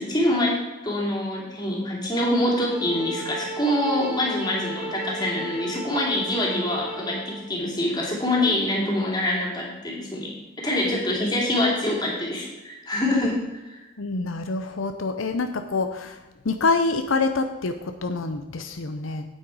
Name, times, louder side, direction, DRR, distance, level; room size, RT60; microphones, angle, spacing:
voice 1, 0.0-13.9, left 1 dB, 20° left, -2 dB, 2.7 m, -25 dB
sound 1, 2.5-7.5, right 1 dB, 5° right, 1.7 m, -35 dB
voice 2, 14.0-16.2 16.4-19.2, left 3 dB, 80° left, 7 dB, 0.7 m, -26 dB
9.0 x 8.9 x 4.8 m, 1.1 s
head